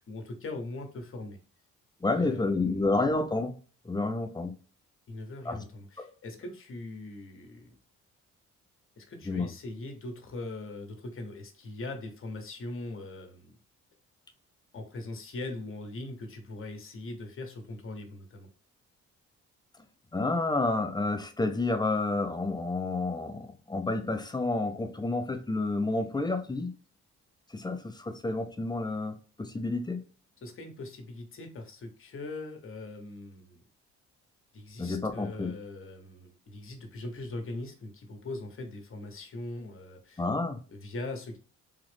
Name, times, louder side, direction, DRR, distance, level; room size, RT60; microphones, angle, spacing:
voice 1, 0.0-1.4 2.1-2.9 5.1-7.8 9.0-13.6 14.7-18.5 30.4-33.6 34.5-40.2 40.7-41.4, left 2 dB, 45° left, 1.1 m, -41 dB
voice 2, 2.0-3.6 3.8-4.5 5.4-5.6 6.0-6.1 9.3-9.5 20.1-26.7 27.5-30.0 34.8-35.5 40.2-40.6, left 2 dB, 15° left, 0.6 m, -30 dB
3.7 x 2.4 x 3.4 m
cardioid pair, 90°, 30 cm